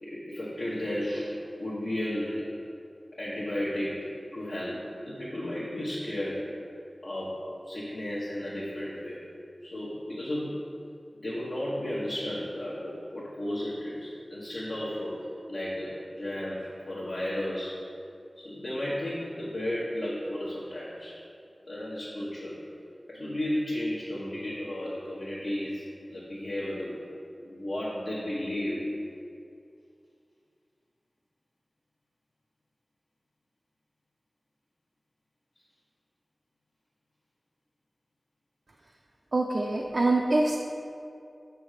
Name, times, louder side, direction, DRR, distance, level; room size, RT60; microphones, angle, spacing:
voice 1, 0.0-2.5 3.2-6.5 7.0-9.2 9.6-10.6 11.1-17.8 18.3-21.2 21.6-22.6 23.1-27.0 27.4-28.9, left 1 dB, 80° left, -8 dB, 1.0 m, -34 dB
voice 2, 39.3-40.6, right 2 dB, 65° right, -1 dB, 0.4 m, -24 dB
6.3 x 3.4 x 4.8 m, 2.5 s
wide cardioid pair, 50°, 0 cm